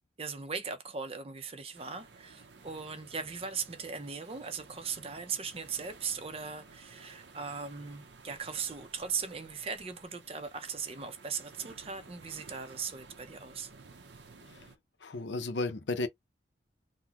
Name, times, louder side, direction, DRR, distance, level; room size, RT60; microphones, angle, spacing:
voice 1, 0.2-13.7, right 6 dB, 30° right, 0.5 m, -39 dB
sound 1, 1.7-14.8, right 4 dB, 75° right, 0.7 m, -54 dB
voice 2, 15.0-16.1, left 2 dB, 75° left, 0.7 m, -33 dB
3.8 x 2.1 x 2.8 m
head